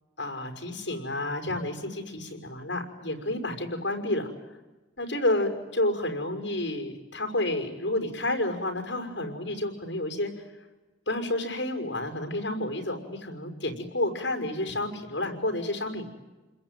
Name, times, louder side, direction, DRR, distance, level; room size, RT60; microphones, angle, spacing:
voice 1, 0.2-4.3 5.0-10.3 11.1-16.1, left 1 dB, 70° left, 5 dB, 5.9 m, -30 dB
29.0 x 21.5 x 9.5 m, 1.1 s
head